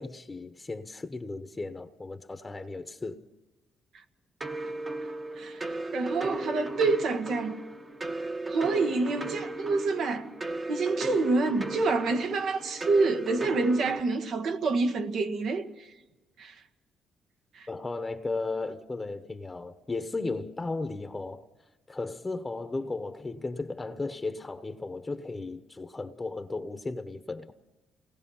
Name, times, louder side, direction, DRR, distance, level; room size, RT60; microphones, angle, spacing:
voice 1, 0.0-3.2 17.7-21.4 21.9-27.5, left 3 dB, 20° left, 1.0 m, -35 dB
sound 1, 4.4-14.0, right 2 dB, 30° right, 1.2 m, -35 dB
voice 2, 5.9-7.6 8.5-10.3 10.7-15.7 16.4-16.5 17.6-17.7, right 3 dB, 70° right, 1.6 m, -27 dB
28.5 x 19.0 x 5.7 m
cardioid pair, 90°, 0 cm